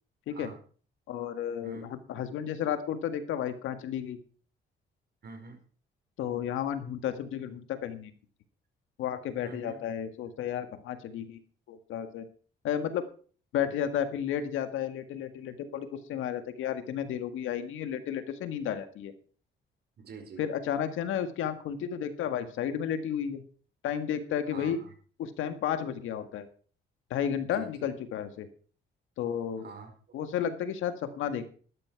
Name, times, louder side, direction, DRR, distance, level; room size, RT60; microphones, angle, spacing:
voice 1, 1.1-4.2 6.2-8.1 9.0-11.4 11.7-12.3 12.6-13.0 13.5-19.1 20.4-23.4 23.8-24.8 25.2-26.5 27.1-28.5 29.2-29.7 30.1-31.5, left 9 dB, 85° left, 9 dB, 1.7 m, -32 dB
voice 2, 5.2-5.6 9.4-9.8 20.0-20.4 24.5-24.9 27.5-27.9 29.6-30.2, right 4 dB, 55° right, 6 dB, 4.5 m, -46 dB
12.5 x 12.0 x 4.7 m, 0.42 s
cardioid pair, 90°, 20 cm